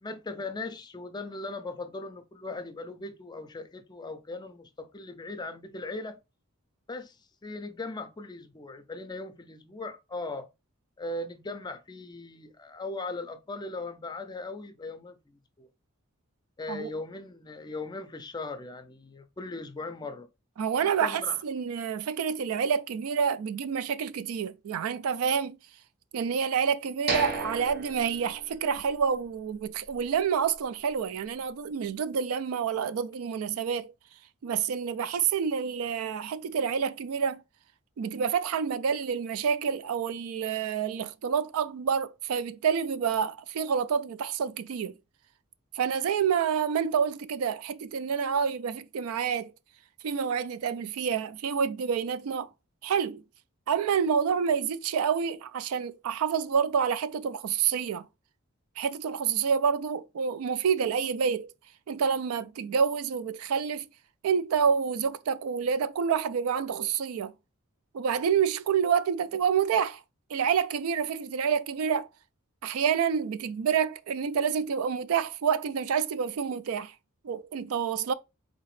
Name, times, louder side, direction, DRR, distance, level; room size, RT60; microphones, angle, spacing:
voice 1, 0.0-6.2 6.9-10.5 11.0-15.7 16.6-20.3 20.8-21.4, left 2 dB, 20° left, 0.4 m, -39 dB
voice 2, 20.6-25.6 26.1-33.9 34.4-37.4 38.0-45.0 45.7-49.5 50.0-52.5 52.8-53.2 53.7-58.0 58.8-61.5 61.9-63.8 64.2-67.3 67.9-70.0 70.3-72.1 72.6-76.9 77.2-78.1, right 7 dB, 85° right, 0.3 m, -28 dB
sound 1, 27.1-29.0 29.3-29.4 29.9-30.1, right 3 dB, 45° right, 0.9 m, -34 dB
4.0 x 2.9 x 3.1 m
head